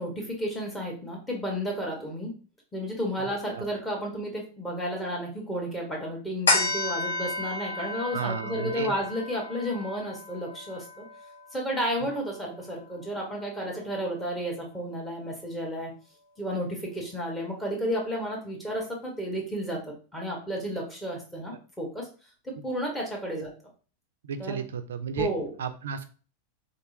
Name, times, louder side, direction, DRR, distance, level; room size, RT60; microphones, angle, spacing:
voice 1, 0.0-2.3 2.7-11.1 11.5-15.9 16.4-22.1 22.4-23.5 24.4-24.6 25.2-25.5, equal, 10° left, -2 dB, 1.4 m, -32 dB
sound 1, 6.5-13.2 13.7-13.8, left 2 dB, 70° left, 1.5 m, -32 dB
voice 2, 8.1-8.9 23.4-23.5 24.2-25.3 25.6-26.1, right 6 dB, 65° right, 8 dB, 0.4 m, -33 dB
3.4 x 2.8 x 2.7 m, 0.36 s
figure-of-eight pair, 90°, 0 cm